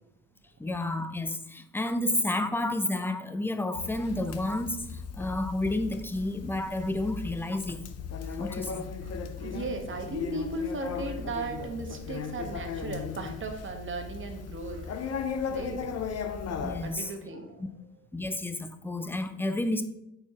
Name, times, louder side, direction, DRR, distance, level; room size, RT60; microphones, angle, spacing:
voice 1, 0.6-7.8 8.3-8.9 16.6-17.1 17.6-17.7 18.1-19.8, left 1 dB, 5° left, 9 dB, 0.5 m, -31 dB
Conversation, 3.7-16.9, left 6 dB, 55° left, 0.7 m, -37 dB
voice 2, 9.0-15.9 16.8-17.6, right 3 dB, 40° right, 4 dB, 1.2 m, -37 dB
4.5 x 4.2 x 5.5 m, 0.84 s
cardioid pair, 90°, 30 cm